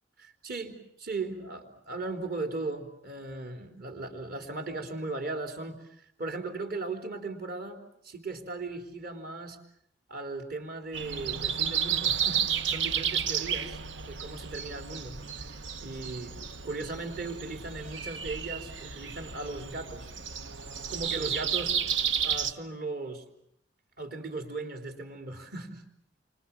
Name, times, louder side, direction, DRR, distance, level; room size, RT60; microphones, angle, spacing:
voice 1, 0.2-5.8 6.2-9.6 10.1-13.8 14.0-15.2 15.8-20.3 20.9-21.8 22.2-23.2 24.0-25.8, right 3 dB, 55° right, 5 dB, 4.0 m, -37 dB
Breathing, 10.9-22.5, right 8 dB, 85° right, 1.1 m, -32 dB
29.5 x 26.0 x 7.3 m, 0.73 s
head